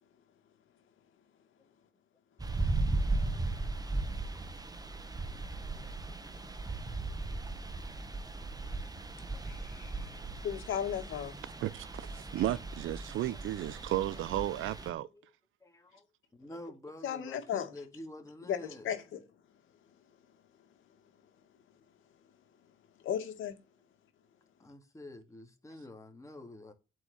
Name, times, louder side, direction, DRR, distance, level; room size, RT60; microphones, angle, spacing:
sound 1, 2.4-14.9, right 2 dB, 20° right, 1.4 m, -37 dB
voice 1, 9.5-10.2 10.4-11.4 17.0-17.7 18.5-19.2 23.0-23.6, left 9 dB, 80° left, 2.2 m, -35 dB
voice 2, 11.6-15.1, right 14 dB, 80° right, 0.8 m, -34 dB
voice 3, 15.6-16.1 16.3-18.9 24.6-26.7, left 1 dB, 15° left, 2.6 m, -48 dB
8.3 x 4.7 x 7.2 m
cardioid pair, 90°, 20 cm